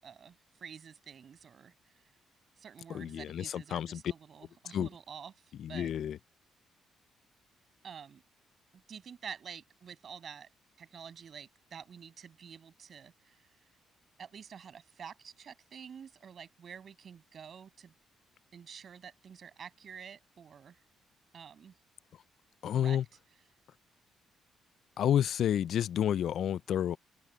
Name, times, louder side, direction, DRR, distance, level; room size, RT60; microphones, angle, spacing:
voice 1, 0.0-2.0 2.6-5.3 5.7-5.9 7.8-8.2 8.7-10.5 10.8-13.5 14.2-17.9 18.5-20.8 21.3-21.7 22.7-23.0, right 7 dB, 50° right, 7.1 m, -49 dB
voice 2, 2.9-4.0 4.7-4.9 5.6-6.2 22.6-23.0 25.0-27.0, left 10 dB, 70° left, 0.3 m, -30 dB
open air
cardioid pair, 90°, 0 cm